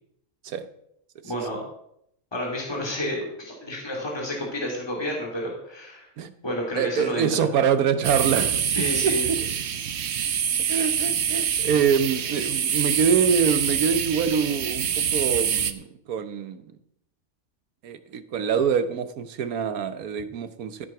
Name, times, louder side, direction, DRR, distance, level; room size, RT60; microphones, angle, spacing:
voice 1, 1.2-1.6 2.3-6.1 6.4-7.6 8.7-9.3, left 1 dB, 15° left, -2 dB, 3.0 m, -30 dB
voice 2, 6.8-9.4 10.7-16.7 17.8-20.9, right 7 dB, 90° right, 11 dB, 1.4 m, -25 dB
sound 1, 8.0-15.7, right 8 dB, 55° right, 1.0 m, -25 dB
14.0 x 7.6 x 5.9 m, 0.76 s
omnidirectional pair, 1.5 m